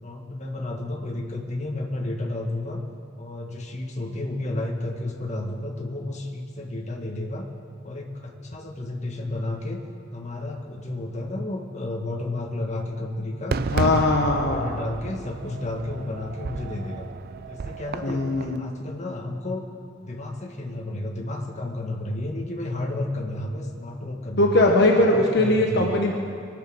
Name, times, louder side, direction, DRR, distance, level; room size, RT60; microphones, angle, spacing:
voice 1, 0.0-2.8 3.2-7.4 7.8-9.8 10.1-13.6 14.0-17.1 17.5-19.6 20.0-24.8 25.1-26.0, left 2 dB, 35° left, 0 dB, 1.6 m, -32 dB
Fireworks, 13.5-18.6, right 4 dB, 50° right, 0.4 m, -32 dB
voice 2, 13.7-14.7 18.0-18.6 24.4-26.1, left 2 dB, 55° left, 0 dB, 1.2 m, -20 dB
22.5 x 8.4 x 6.4 m, 2.2 s
head